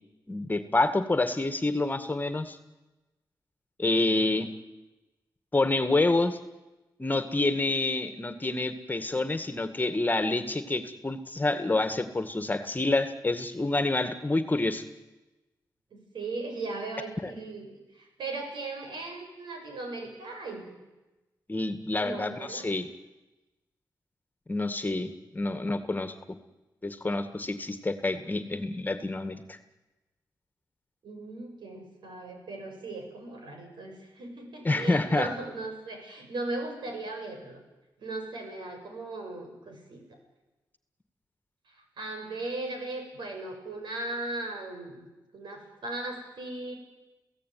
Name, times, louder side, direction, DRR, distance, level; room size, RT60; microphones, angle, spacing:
voice 1, 0.3-2.6 3.8-4.5 5.5-6.4 7.0-14.8 17.2-17.3 21.5-22.9 24.5-26.2 26.8-29.6 34.6-35.3, left 2 dB, 20° left, 9 dB, 2.1 m, -28 dB
voice 2, 3.8-4.5 15.9-20.7 22.0-22.7 31.0-37.6 38.0-40.2 41.7-45.0 45.3-46.7, right 2 dB, 80° right, 3 dB, 7.4 m, -38 dB
29.5 x 16.5 x 9.5 m, 1.1 s
cardioid pair, 75°, 8 cm